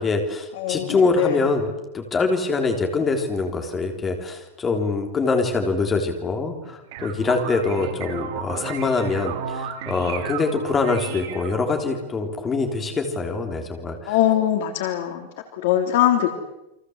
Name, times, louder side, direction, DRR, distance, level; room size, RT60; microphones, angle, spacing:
voice 1, 0.0-1.7 1.9-14.2, left 3 dB, 15° left, 4 dB, 3.6 m, -24 dB
voice 2, 0.6-1.4 14.1-15.3 15.6-16.3, left 12 dB, 55° left, 5 dB, 3.4 m, -21 dB
sound 1, 6.6-11.9, right 7 dB, 50° right, 4.5 m, -33 dB
30.0 x 24.0 x 8.1 m, 0.90 s
supercardioid pair, 175°, 0 cm